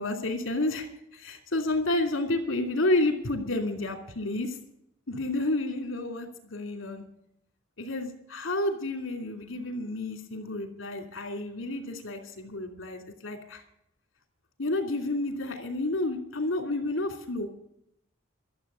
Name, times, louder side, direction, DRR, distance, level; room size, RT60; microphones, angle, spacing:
voice 1, 0.0-4.5 5.1-7.0 7.8-13.6 14.6-17.5, left 2 dB, 80° left, 5 dB, 2.7 m, -30 dB
13.5 x 7.6 x 9.4 m, 0.75 s
head